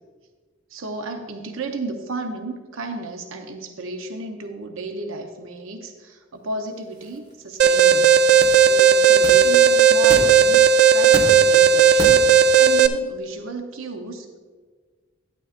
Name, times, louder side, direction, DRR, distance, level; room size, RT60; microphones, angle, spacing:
voice 1, 0.7-8.2 8.6-14.3, right 3 dB, 90° right, 5 dB, 0.8 m, -33 dB
sound 1, 6.6-12.9, equal, 20° right, 1.2 m, -34 dB
Alarm, 7.6-12.9, right 7 dB, 55° right, 0.4 m, -14 dB
11.5 x 9.8 x 2.5 m, 1.5 s
head